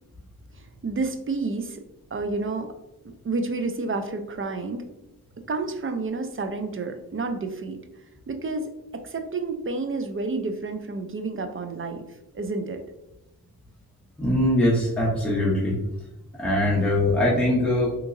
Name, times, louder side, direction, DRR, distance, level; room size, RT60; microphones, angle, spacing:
voice 1, 0.5-1.8 2.1-2.7 3.0-4.9 5.5-7.8 8.3-12.0 12.3-12.8, right 3 dB, 35° right, 7 dB, 0.5 m, -30 dB
voice 2, 14.2-15.8 16.4-17.9, left 1 dB, 5° left, -5 dB, 0.8 m, -22 dB
3.6 x 2.9 x 2.5 m, 0.96 s
cardioid pair, 55°, 36 cm